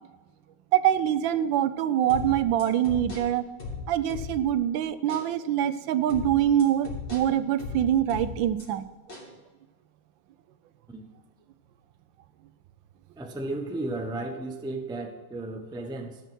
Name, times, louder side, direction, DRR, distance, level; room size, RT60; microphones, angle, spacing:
voice 1, 0.7-3.4 3.9-8.8, right 11 dB, 85° right, 13 dB, 1.4 m, -24 dB
sound 1, 2.1-4.6 5.1-5.3 6.1-8.6 9.1-9.3, left 4 dB, 55° left, 3.3 m, -38 dB
voice 2, 13.2-16.2, right 2 dB, 5° right, 4 dB, 0.5 m, -34 dB
12.5 x 5.8 x 6.0 m, 1.3 s
omnidirectional pair, 2.0 m